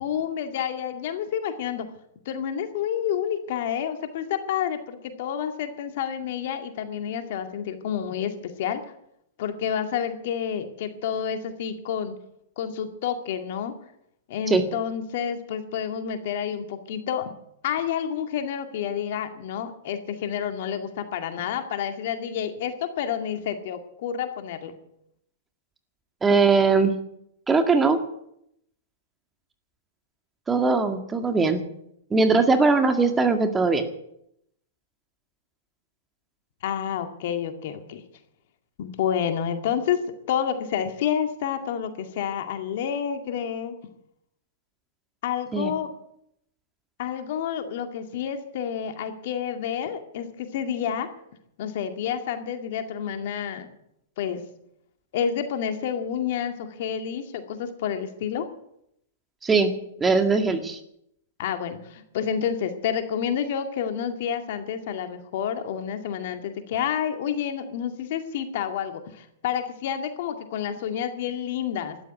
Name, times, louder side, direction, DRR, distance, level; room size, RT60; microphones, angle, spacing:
voice 1, 0.0-1.9 2.3-8.3 8.6-8.8 9.4-12.2 12.6-13.7 14.3-17.3 17.6-24.8 36.6-38.0 38.8-40.0 40.3-43.7 45.2-45.9 47.0-51.1 51.6-53.7 54.2-54.4 55.1-58.5 61.4-72.0, left 8 dB, 60° left, 7 dB, 2.2 m, -29 dB
voice 2, 26.2-26.9 27.5-28.0 30.5-31.6 32.1-33.8 45.5-45.7 59.4-59.7 60.0-60.8, right 4 dB, 15° right, 7 dB, 2.0 m, -20 dB
13.0 x 11.5 x 9.5 m, 0.76 s
hypercardioid pair, 115°, 0 cm